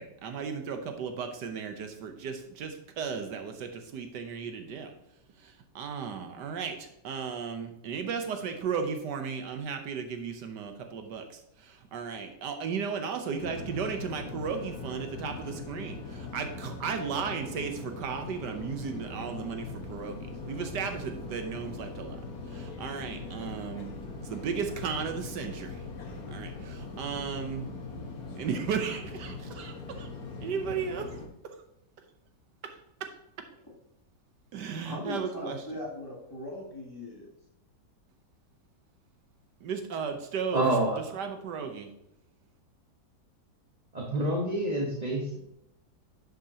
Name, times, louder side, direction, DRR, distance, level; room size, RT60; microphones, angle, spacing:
voice 1, 0.0-4.9 5.4-22.2 22.5-23.9 24.2-25.8 26.3-27.7 28.3-30.1 30.4-31.2 31.4-31.6 32.6-33.5 34.5-35.6 39.6-40.6 41.1-41.9, right 6 dB, 80° right, 6 dB, 1.5 m, -35 dB
sound 1, 13.4-31.3, left 3 dB, 60° left, 1.6 m, -41 dB
voice 2, 34.8-37.3, left 1 dB, 10° left, -5 dB, 3.0 m, -39 dB
voice 3, 40.5-41.0 43.9-45.4, right 1 dB, 25° right, -2 dB, 1.3 m, -27 dB
11.5 x 6.5 x 2.8 m, 0.80 s
omnidirectional pair, 1.9 m